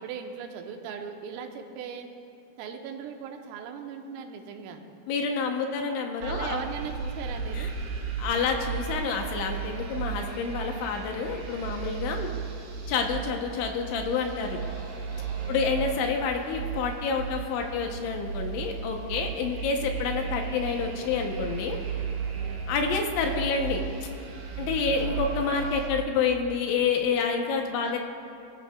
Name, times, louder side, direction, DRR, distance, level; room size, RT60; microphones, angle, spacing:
voice 1, 0.0-2.1 2.6-4.8 6.2-7.7 15.4-15.7 22.3-22.7 24.6-25.1 27.8-28.0, right 7 dB, 90° right, 4 dB, 3.5 m, -39 dB
voice 2, 5.1-6.6 7.5-7.7 8.2-12.3 12.9-14.6 15.5-21.8 22.7-23.8 24.6-28.0, left 5 dB, 75° left, 3 dB, 3.0 m, -28 dB
sound 1, 6.2-25.9, right 6 dB, 60° right, 2.2 m, -35 dB
23.5 x 14.0 x 2.3 m, 2.8 s
omnidirectional pair, 5.9 m